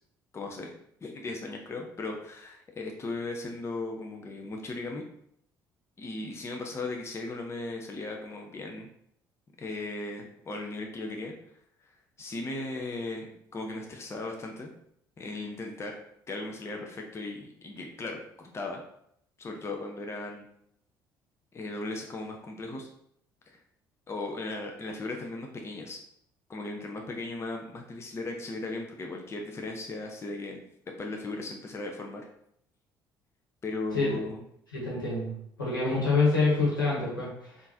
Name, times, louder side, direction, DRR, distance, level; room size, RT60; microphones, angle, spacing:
voice 1, 0.3-0.7 1.0-5.0 6.0-8.9 9.6-11.3 12.2-14.7 15.2-16.0 16.3-18.8 19.4-20.4 21.5-22.9 23.5-23.6 24.1-26.0 26.5-30.6 31.0-32.3 33.6-34.4, left 2 dB, 25° left, 2 dB, 0.5 m, -37 dB
voice 2, 34.7-35.3 35.6-37.5, left 3 dB, 85° left, -6 dB, 1.2 m, -26 dB
3.7 x 2.5 x 2.7 m, 0.71 s
figure-of-eight pair, 50°, 11 cm